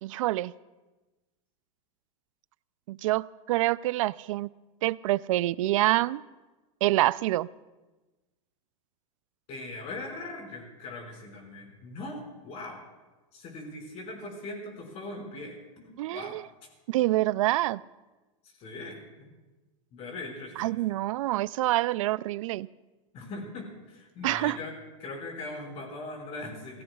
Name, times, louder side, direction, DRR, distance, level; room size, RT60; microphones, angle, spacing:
voice 1, 0.0-0.5 2.9-4.5 4.8-6.2 6.8-7.5 16.0-16.4 16.9-17.8 20.6-22.7 24.2-24.6, right 17 dB, 75° right, 20 dB, 0.4 m, -26 dB
voice 2, 9.5-12.8 13.3-16.4 18.6-19.3 19.9-20.8 23.1-26.8, left 2 dB, 35° left, 1 dB, 5.3 m, -40 dB
28.5 x 16.5 x 2.4 m, 1.2 s
supercardioid pair, 135°, 17 cm